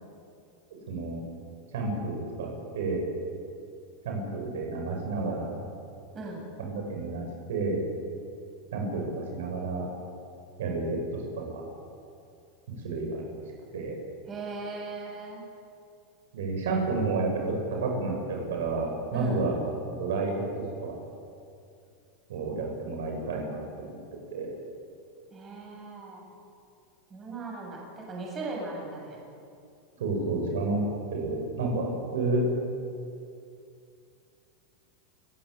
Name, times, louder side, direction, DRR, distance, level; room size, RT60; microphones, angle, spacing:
voice 1, 0.9-1.2 1.7-2.5 2.7-3.0 4.0-5.6 6.6-7.8 8.7-9.0 9.3-9.8 10.6-11.0 11.4-11.6 12.8-13.2 13.7-14.0 16.3-20.4 20.8-21.0 22.3-23.6 23.8-24.0 24.3-24.5 30.0-30.8 31.1-32.4, right 3 dB, 85° right, 1 dB, 7.5 m, -30 dB
voice 2, 14.3-15.4 19.1-19.4 22.5-22.7 25.3-26.2 27.1-29.2, right 3 dB, 20° right, -1 dB, 7.1 m, -38 dB
28.5 x 15.5 x 8.8 m, 2.5 s
supercardioid pair, 150°, 0 cm